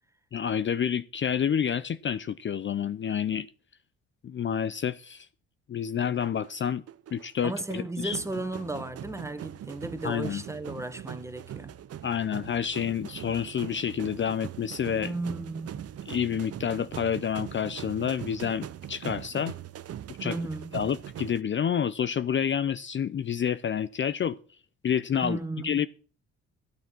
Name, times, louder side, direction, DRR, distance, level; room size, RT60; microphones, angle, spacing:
voice 1, 0.3-3.5 4.2-5.3 5.7-6.8 7.1-8.2 10.0-10.4 12.0-15.1 16.1-19.5 20.2-20.4 20.7-24.4 24.8-25.4 25.6-25.9, left 8 dB, 40° left, 0.6 m, -29 dB
sound 1, 6.0-21.4, right 10 dB, 55° right, 0.8 m, -41 dB
voice 2, 7.4-11.8 15.0-16.0 20.2-20.8 25.2-25.9, right 2 dB, 10° right, 1.6 m, -35 dB
13.0 x 9.3 x 6.0 m
cardioid pair, 90°, 30 cm